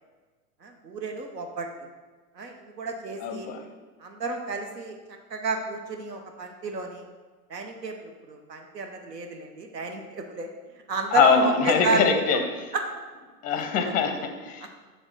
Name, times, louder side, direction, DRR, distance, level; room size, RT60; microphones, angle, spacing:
voice 1, 0.6-1.7 2.3-3.5 4.0-5.0 5.3-7.0 7.5-10.5 10.9-12.0 12.7-12.8 13.8-13.9 14.6-14.7, right 4 dB, 85° right, 3 dB, 1.0 m, -31 dB
voice 2, 3.2-3.6 11.1-12.4 13.4-14.7, left 6 dB, 20° left, 5 dB, 0.5 m, -23 dB
5.1 x 3.5 x 5.4 m, 1.4 s
figure-of-eight pair, 100°, 48 cm